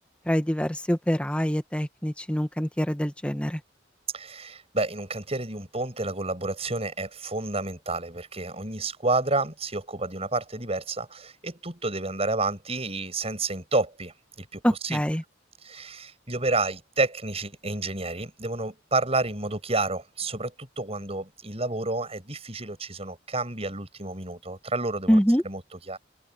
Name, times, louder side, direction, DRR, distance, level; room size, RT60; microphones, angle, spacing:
voice 1, 0.3-3.6 14.6-15.2 25.1-25.4, equal, 5° left, 1.4 m, -25 dB
voice 2, 4.1-15.0 15.6-25.2 25.4-26.0, right 2 dB, 30° right, 8.0 m, -30 dB
open air
head